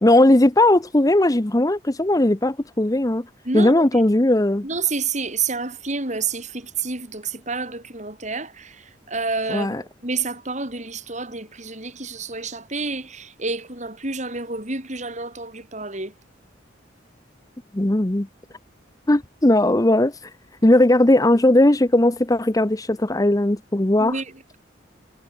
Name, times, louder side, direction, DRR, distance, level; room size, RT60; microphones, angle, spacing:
voice 1, 0.0-3.3 3.5-4.6 9.5-9.8 17.7-18.3 19.1-20.1 20.6-24.1, left 1 dB, 20° left, 0.8 m, -18 dB
voice 2, 3.4-4.0 4.6-16.1 24.0-24.6, right 4 dB, 40° right, 6.2 m, -29 dB
head